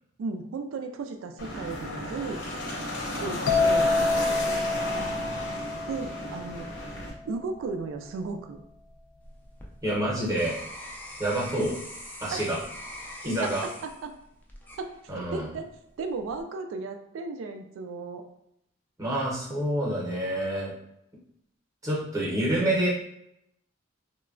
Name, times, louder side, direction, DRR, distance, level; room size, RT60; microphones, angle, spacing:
voice 1, 0.2-2.4 3.2-3.9 5.9-6.7 7.3-8.6 12.3-12.6 13.4-14.2 14.8-15.7 16.0-18.2, right 4 dB, 85° right, 6 dB, 0.3 m, -35 dB
sound 1, 1.4-7.1, left 1 dB, 65° left, 0.9 m, -33 dB
sound 2, 3.5-7.1, left 3 dB, 80° left, 0.4 m, -27 dB
sound 3, 9.2-15.4 16.0-16.4, left 1 dB, 10° left, 0.3 m, -43 dB
voice 2, 9.8-10.6 11.2-11.7 12.2-12.6 13.2-13.6 15.1-15.5 19.0-20.7 21.8-22.9, right 1 dB, 15° right, -5 dB, 0.7 m, -27 dB
3.1 x 2.2 x 2.4 m, 0.80 s
head